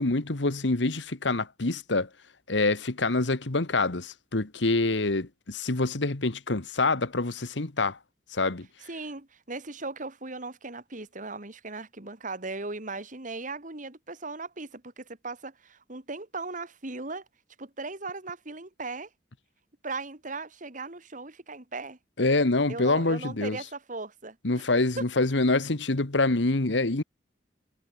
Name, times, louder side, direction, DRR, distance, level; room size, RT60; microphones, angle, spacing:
voice 1, 0.0-2.1 2.5-8.0 8.3-8.7 22.2-23.6 24.4-27.0, left 2 dB, 80° left, 1.5 m, -26 dB
voice 2, 8.9-17.2 17.6-19.1 19.8-22.0 22.7-24.4 25.0-25.1, right 3 dB, 45° right, 2.7 m, -38 dB
head